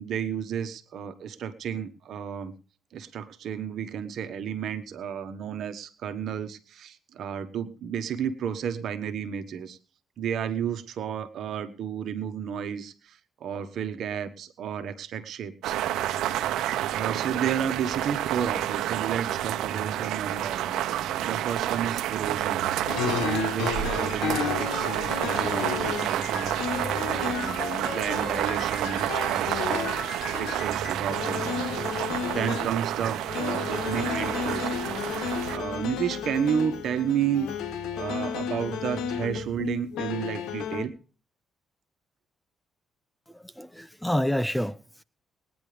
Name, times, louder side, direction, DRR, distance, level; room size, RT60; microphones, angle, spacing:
voice 1, 0.0-2.5 2.9-9.8 10.2-16.1 16.9-26.8 27.1-32.0 32.3-37.5 37.9-40.9, right 8 dB, 70° right, 1.3 m, -32 dB
sound 1, 15.6-35.6, right 12 dB, 85° right, 0.9 m, -29 dB
sound 2, 22.9-32.9 33.2-40.9, left 8 dB, 85° left, 1.5 m, -33 dB
sound 3, 25.3-39.6, right 3 dB, 50° right, 1.4 m, -46 dB
voice 2, 43.3-45.0, left 1 dB, 5° left, 0.5 m, -28 dB
21.0 x 9.9 x 3.4 m
cardioid pair, 90°, 0 cm